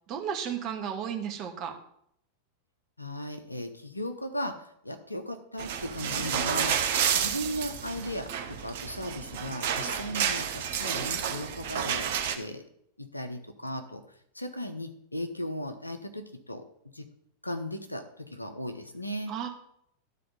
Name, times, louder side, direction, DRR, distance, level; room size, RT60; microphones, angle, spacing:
voice 1, 0.1-1.8 19.3-19.5, right 8 dB, 40° right, 5 dB, 1.4 m, -33 dB
voice 2, 3.0-6.8 7.1-12.6 13.0-14.0 14.3-16.7 16.9-17.1 17.4-19.4, equal, 85° left, 7 dB, 0.9 m, -37 dB
sound 1, 5.6-12.4, right 8 dB, 55° right, 0.9 m, -30 dB
12.5 x 4.1 x 5.4 m, 0.71 s
figure-of-eight pair, 90°, 0 cm